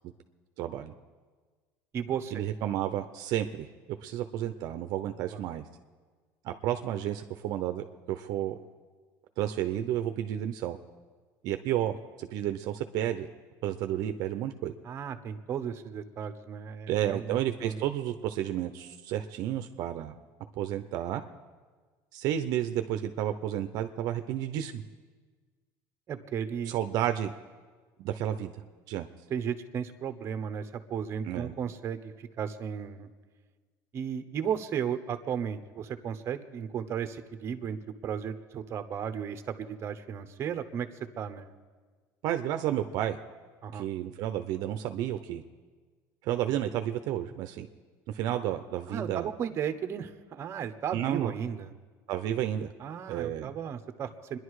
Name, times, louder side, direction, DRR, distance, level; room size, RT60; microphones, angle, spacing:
voice 1, 0.6-0.9 2.3-5.6 6.4-8.6 9.4-10.8 11.4-13.3 13.6-14.7 16.9-20.1 20.6-21.2 22.1-24.8 26.7-27.3 28.0-28.5 28.9-29.1 31.3-31.5 42.2-43.2 43.7-45.4 46.2-47.7 48.1-49.3 50.9-51.3 52.1-52.7 53.1-53.6, right 11 dB, 65° right, 7 dB, 0.8 m, -31 dB
voice 2, 1.9-2.5 5.3-5.4 14.8-17.8 26.1-26.7 29.3-33.1 33.9-40.9 41.2-41.5 43.6-43.9 48.9-51.7 52.8-54.4, right 8 dB, 40° right, 8 dB, 1.0 m, -35 dB
26.0 x 11.0 x 4.8 m, 1.4 s
cardioid pair, 145°, 7 cm